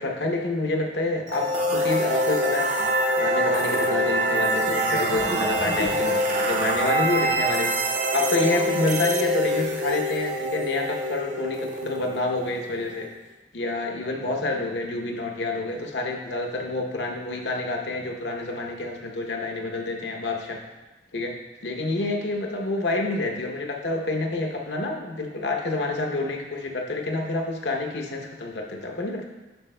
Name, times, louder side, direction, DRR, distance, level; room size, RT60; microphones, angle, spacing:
voice 1, 0.0-2.9 3.1-13.1 13.5-20.6 21.1-21.3 21.6-29.3, left 2 dB, 80° left, 2 dB, 0.8 m, -28 dB
sound 1, 1.3-13.1, equal, 45° right, 0.5 m, -25 dB
7.8 x 5.5 x 2.2 m, 1.1 s
head